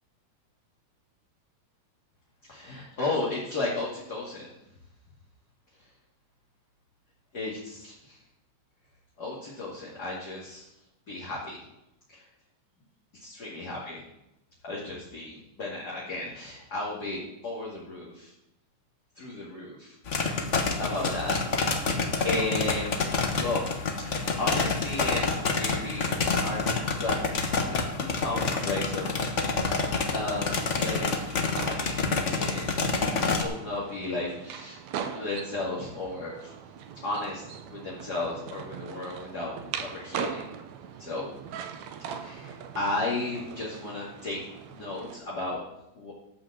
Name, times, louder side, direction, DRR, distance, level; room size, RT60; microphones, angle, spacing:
voice 1, 2.5-4.5 7.3-8.2 9.2-10.7 11.1-11.6 12.1-12.2 13.2-14.0 14.6-18.3 19.1-21.4 22.1-23.0 23.4-23.6 24.0-26.1 26.4-26.6 27.0-27.4 27.7-31.2 31.6-32.8 33.1-36.5 36.9-37.4 37.7-40.4 41.0-41.3 42.2-44.4 44.7-45.6 45.9-46.1, left 2 dB, 35° left, -7 dB, 2.8 m, -34 dB
sound 1, 20.1-33.4, left 4 dB, 70° left, 0.7 m, -28 dB
sound 2, 30.3-45.2, right 8 dB, 75° right, 2.1 m, -41 dB
13.0 x 5.7 x 7.6 m, 0.89 s
omnidirectional pair, 3.4 m